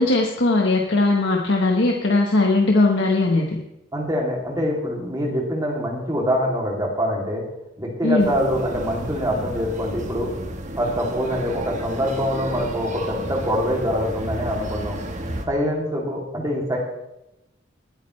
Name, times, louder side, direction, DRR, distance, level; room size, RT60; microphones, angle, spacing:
voice 1, 0.0-3.6 8.0-8.3, left 2 dB, 60° left, 0 dB, 1.3 m, -19 dB
voice 2, 3.9-7.4 7.8-10.3 10.8-15.0 15.5-16.8, equal, 20° right, -2 dB, 2.8 m, -24 dB
sound 1, 8.2-15.5, right 1 dB, 35° right, 1.2 m, -32 dB
21.0 x 9.1 x 3.2 m, 0.88 s
head